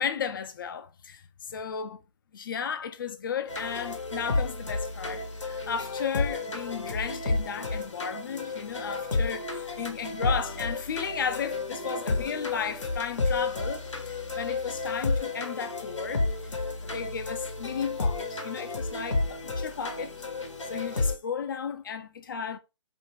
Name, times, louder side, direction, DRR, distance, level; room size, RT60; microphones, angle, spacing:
voice 1, 0.0-2.0 2.3-16.3 16.8-20.2 20.7-22.6, left 7 dB, 45° left, 0.4 m, -34 dB
sound 1, 3.5-21.2, left 3 dB, 80° left, 0.7 m, -31 dB
2.5 x 2.1 x 3.1 m
figure-of-eight pair, 145°, 16 cm